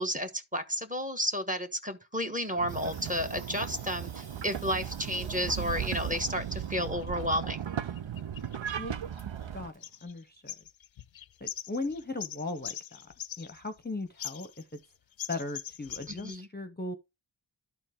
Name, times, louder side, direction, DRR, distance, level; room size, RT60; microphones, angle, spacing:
voice 1, 0.0-7.6 16.1-16.5, equal, 15° right, 1.3 m, -32 dB
Water tap faucet / Sink (filling or washing), 2.4-10.0, right 3 dB, 55° right, 1.6 m, -53 dB
sound 1, 2.6-9.7, right 9 dB, 75° right, 0.6 m, -37 dB
sound 2, 7.0-7.3 8.0-9.5 9.8-10.2 10.5-13.8 14.2-14.9 15.2-16.4, left 10 dB, 80° left, 0.5 m, -42 dB
voice 2, 9.5-10.5 11.4-14.8 15.3-16.9, left 2 dB, 20° left, 0.8 m, -38 dB
12.0 x 4.5 x 3.6 m
wide cardioid pair, 45°, 46 cm